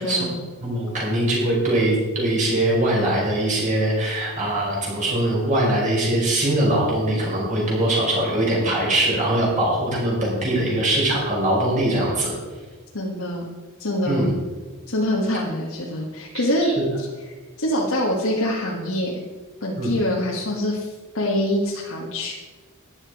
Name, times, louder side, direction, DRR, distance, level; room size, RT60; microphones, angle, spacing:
voice 1, 0.0-0.4 12.9-13.5 13.8-14.3 14.9-17.1 17.6-19.2 19.6-22.4, left 1 dB, 75° left, -3 dB, 1.7 m, -25 dB
voice 2, 0.6-12.3 14.0-14.3 16.6-16.7 19.8-19.9, right 1 dB, 35° right, -4 dB, 5.1 m, -22 dB
14.0 x 10.5 x 4.8 m, 1.3 s
head